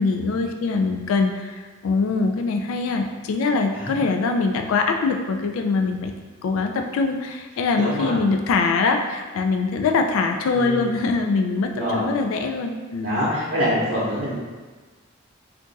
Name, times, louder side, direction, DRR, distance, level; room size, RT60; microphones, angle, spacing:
voice 1, 0.0-6.1 6.4-13.2, left 4 dB, 80° left, 4 dB, 0.3 m, -23 dB
voice 2, 7.8-8.2 10.5-11.0 11.7-12.0 13.0-14.3, equal, 55° right, -10 dB, 0.7 m, -25 dB
2.5 x 2.3 x 3.9 m, 1.3 s
head